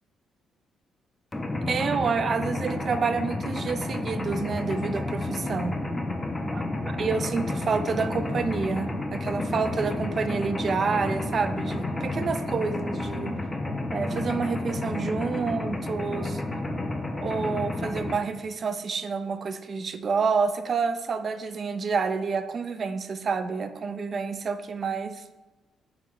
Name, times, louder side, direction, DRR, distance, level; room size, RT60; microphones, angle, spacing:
Mechanisms, 1.3-18.2, left 2 dB, 20° left, 0.4 m, -31 dB
voice 1, 1.7-5.7 6.5-6.6 7.0-13.3 13.9-16.4 17.2-25.2, right 5 dB, 45° right, 10 dB, 0.3 m, -28 dB
3.8 x 3.0 x 4.4 m, 1.1 s
cardioid pair, 90°, 0 cm